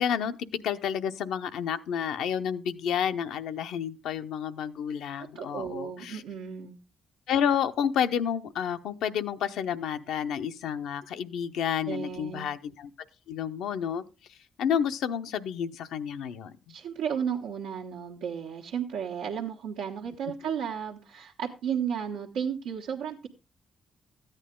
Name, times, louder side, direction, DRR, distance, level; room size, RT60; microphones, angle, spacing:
voice 1, 0.0-6.2 7.3-12.9 13.3-14.0 14.3-16.7, left 8 dB, 80° left, 0.8 m, -30 dB
voice 2, 5.3-6.8 11.9-12.5 16.7-23.3, right 7 dB, 90° right, 1.3 m, -33 dB
14.0 x 9.0 x 3.7 m
supercardioid pair, 50°, 0 cm